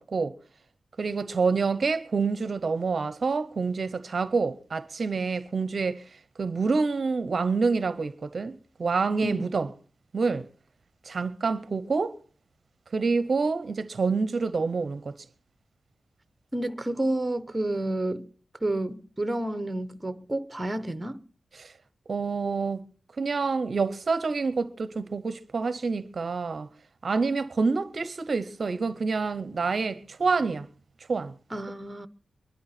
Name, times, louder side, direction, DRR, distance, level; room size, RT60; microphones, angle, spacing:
voice 1, 1.0-9.7 10.1-10.5 11.0-12.1 12.9-15.1 21.5-21.7 22.1-22.8 23.2-26.7 27.0-30.7 31.1-31.3, right 4 dB, 50° right, 0.6 m, -27 dB
voice 2, 16.5-18.3 18.6-21.2 31.5-32.1, right 1 dB, 15° right, 0.8 m, -30 dB
22.5 x 11.5 x 4.2 m
wide cardioid pair, 130°, 0 cm